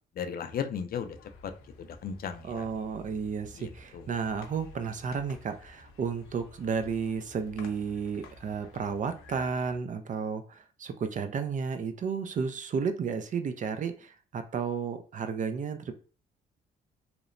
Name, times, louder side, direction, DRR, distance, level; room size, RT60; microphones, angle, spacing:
voice 1, 0.2-1.2 1.4-1.5 1.8-2.7 3.6-4.1, left 7 dB, 50° left, 0.4 m, -35 dB
sound 1, 0.9-9.8, left 3 dB, 90° left, 0.6 m, -52 dB
voice 2, 2.4-15.9, right 6 dB, 40° right, 0.4 m, -32 dB
2.9 x 2.1 x 2.5 m
cardioid pair, 90°, 20 cm